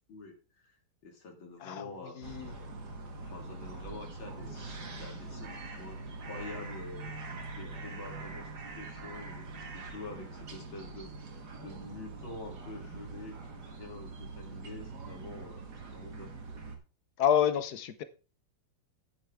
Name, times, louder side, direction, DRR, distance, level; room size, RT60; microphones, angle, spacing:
voice 1, 0.1-0.8 1.0-2.2 3.0-6.0 6.3-7.1 7.5-8.5 8.8-11.3 11.6-13.4 13.7-16.3, left 3 dB, 80° left, 2.9 m, -47 dB
voice 2, 2.2-2.5 17.2-18.0, left 9 dB, 60° left, 1.2 m, -28 dB
sound 1, 2.2-16.8, right 3 dB, 55° right, 2.2 m, -43 dB
sound 2, 6.1-13.8, right 3 dB, 20° right, 2.9 m, -54 dB
10.5 x 9.1 x 3.5 m
omnidirectional pair, 2.2 m